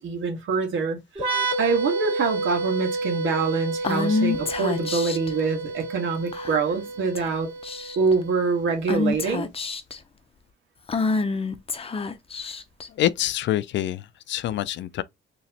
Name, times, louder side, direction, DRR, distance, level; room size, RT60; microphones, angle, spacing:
voice 1, 0.0-7.5 8.0-9.5, right 5 dB, 80° right, 1.6 m, -25 dB
sound 1, 1.2-8.7, right 3 dB, 25° right, 2.2 m, -30 dB
Female speech woman speaking / Whispering, 3.8-5.3 6.3-6.7 7.2-7.3 7.6-8.1 8.9-10.0 10.9-12.9, left 4 dB, 30° left, 0.7 m, -27 dB
voice 2, 12.9-15.0, left 13 dB, 65° left, 0.4 m, -26 dB
4.1 x 3.0 x 2.8 m
cardioid pair, 90°, 20 cm